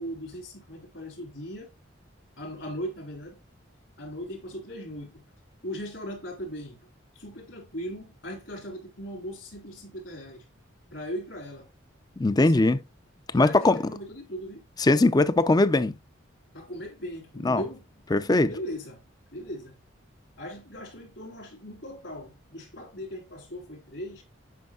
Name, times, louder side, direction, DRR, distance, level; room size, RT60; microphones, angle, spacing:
voice 1, 0.0-1.7 2.4-3.4 4.0-5.2 5.6-6.8 7.1-10.4 10.9-11.7 12.3-12.5 13.3-14.6 16.5-17.8 18.4-19.0 19.3-19.8 20.4-24.2, equal, 65° left, 3.5 m, -38 dB
voice 2, 12.2-12.8 13.3-13.8 14.8-16.0 17.4-17.6 18.1-18.5, left 2 dB, 20° left, 0.4 m, -20 dB
9.3 x 5.4 x 2.4 m
head